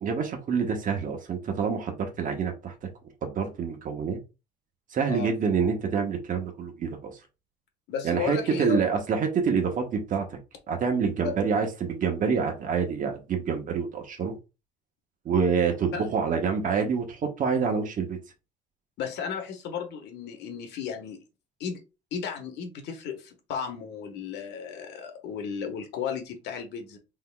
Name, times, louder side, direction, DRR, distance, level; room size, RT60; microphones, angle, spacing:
voice 1, 0.0-2.7 3.2-4.2 4.9-7.2 8.0-10.4 10.7-14.3 15.2-18.2, right 6 dB, 50° right, 1.2 m, -27 dB
voice 2, 7.9-8.8 11.2-11.4 15.4-15.5 15.9-16.0 19.0-21.2 21.6-21.8 22.1-27.0, left 7 dB, 70° left, 1.4 m, -34 dB
3.9 x 3.8 x 2.3 m
cardioid pair, 105°, 18 cm